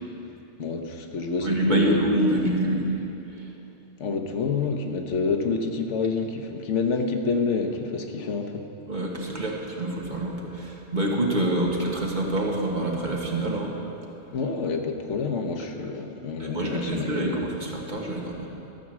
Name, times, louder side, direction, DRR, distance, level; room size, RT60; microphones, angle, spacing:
voice 1, 0.6-2.0 4.0-8.6 14.3-17.5, left 4 dB, 80° left, 4 dB, 1.2 m, -28 dB
voice 2, 1.4-2.9 8.9-13.7 16.4-18.5, right 1 dB, 40° right, -2 dB, 1.5 m, -26 dB
13.5 x 6.0 x 7.4 m, 2.8 s
omnidirectional pair, 1.2 m